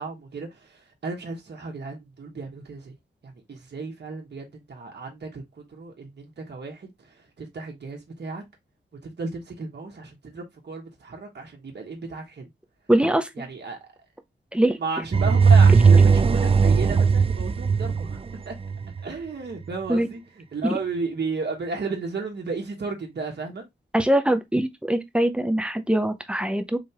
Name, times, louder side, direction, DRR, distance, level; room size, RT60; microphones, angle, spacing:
voice 1, 0.0-2.9 3.2-6.9 7.4-8.4 9.0-12.5 13.4-13.8 14.8-18.2 18.4-18.5 19.0-20.2 20.5-23.6, right 4 dB, 60° right, 1.5 m, -34 dB
voice 2, 12.9-13.3 14.5-14.8 19.9-20.1 20.6-20.7 23.9-26.8, right 1 dB, 5° right, 0.7 m, -22 dB
sound 1, 15.1-19.0, right 5 dB, 30° right, 0.4 m, -17 dB
4.7 x 3.5 x 2.9 m
wide cardioid pair, 100°, 19 cm